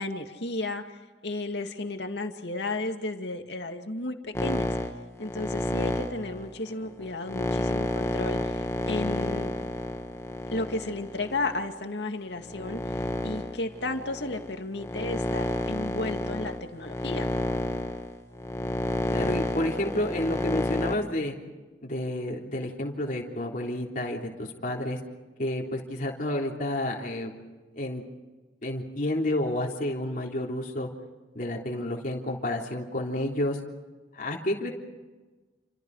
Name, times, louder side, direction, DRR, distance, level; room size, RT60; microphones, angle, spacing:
voice 1, 0.0-4.7 5.2-9.5 10.5-17.3, left 2 dB, 70° left, 5 dB, 2.3 m, -33 dB
sound 1, 4.3-11.7 12.3-20.9, left 1 dB, 15° left, 1.9 m, -30 dB
voice 2, 19.1-21.4 21.8-25.0 25.4-27.3 27.7-28.0 28.6-30.9 31.4-33.6 34.1-34.7, left 1 dB, 50° left, -1 dB, 3.5 m, -30 dB
29.0 x 26.0 x 4.9 m, 1.2 s
head